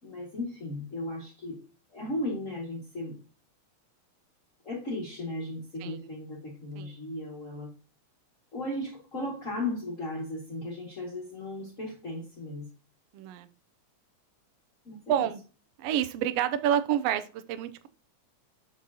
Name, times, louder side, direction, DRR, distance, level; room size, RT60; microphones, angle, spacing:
voice 1, 0.0-1.6 1.9-3.2 4.6-7.7 8.5-12.7 14.8-15.3, left 1 dB, 30° left, -3 dB, 2.2 m, -36 dB
voice 2, 13.1-13.5 15.1-15.4 15.8-17.9, right 10 dB, 80° right, 11 dB, 1.4 m, -28 dB
7.6 x 6.1 x 2.8 m, 0.34 s
omnidirectional pair, 3.4 m